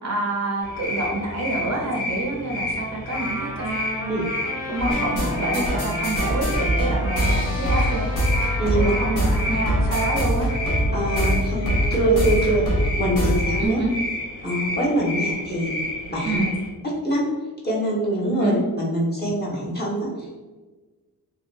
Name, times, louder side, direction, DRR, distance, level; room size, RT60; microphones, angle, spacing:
voice 1, 0.0-4.1 4.7-8.1 8.7-10.5 13.6-13.9 16.3-16.5 18.2-18.6, right 2 dB, 45° right, -1 dB, 0.5 m, -27 dB
sound 1, 0.6-16.7, left 1 dB, 85° left, 0.7 m, -31 dB
Trumpet, 3.1-10.3, equal, 10° right, 0.6 m, -35 dB
sound 2, 4.8-13.7, equal, 55° left, 0.9 m, -24 dB
voice 2, 8.6-8.9 10.9-12.7 13.0-13.8 14.4-15.7 16.1-16.4 16.8-17.2 17.6-20.3, right 1 dB, 25° left, -5 dB, 0.8 m, -24 dB
2.7 x 2.2 x 2.4 m, 1.3 s
wide cardioid pair, 105°, 37 cm